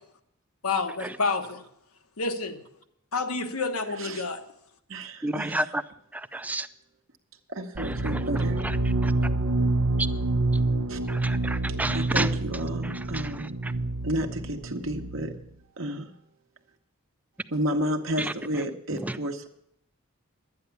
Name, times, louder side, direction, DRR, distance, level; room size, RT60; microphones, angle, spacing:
voice 1, 0.6-1.6 2.2-2.6 3.1-4.4, left 4 dB, 85° left, 7 dB, 1.2 m, -29 dB
voice 2, 3.9-4.3 4.9-5.7 7.5-8.6 10.9-11.0 11.9-13.6 14.0-15.3 15.8-16.1 17.5-19.5, right 1 dB, 60° right, 3 dB, 1.1 m, -31 dB
voice 3, 5.2-5.8 6.1-6.7 7.8-8.2 8.6-8.8 9.0-9.1 11.1-12.3 12.8-13.7 18.2-18.3 19.0-19.2, right 1 dB, 5° right, 12 dB, 0.4 m, -31 dB
sound 1, 7.7-15.4, right 2 dB, 85° right, 0.8 m, -27 dB
11.5 x 9.5 x 7.0 m, 0.74 s
head